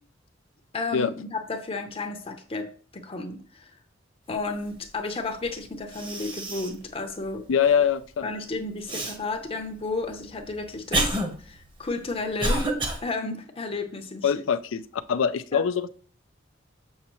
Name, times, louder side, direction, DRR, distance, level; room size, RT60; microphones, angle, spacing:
voice 1, 0.7-3.7 4.3-7.4 8.2-12.7 13.0-14.3 15.5-15.6, left 3 dB, 30° left, 6 dB, 0.7 m, -32 dB
Cough, 5.5-5.6 5.9-6.8 7.3-7.4 8.9-9.2 9.9-13.0, right 1 dB, 25° right, 1.0 m, -28 dB
voice 2, 7.5-8.3 14.2-14.8 15.1-15.9, left 7 dB, 85° left, 12 dB, 0.5 m, -23 dB
6.9 x 6.5 x 3.0 m, 0.44 s
head